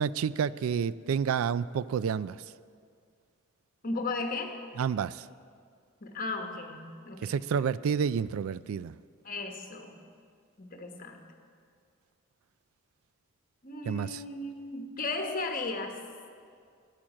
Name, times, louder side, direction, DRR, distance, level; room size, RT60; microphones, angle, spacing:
voice 1, 0.0-2.4 4.8-5.3 7.2-9.0 13.9-14.2, right 7 dB, 80° right, 18 dB, 0.3 m, -29 dB
voice 2, 3.8-4.6 6.0-7.6 9.2-10.0 10.6-11.3 13.6-16.0, left 3 dB, 40° left, 4 dB, 1.2 m, -36 dB
13.0 x 9.1 x 7.5 m, 2.2 s
head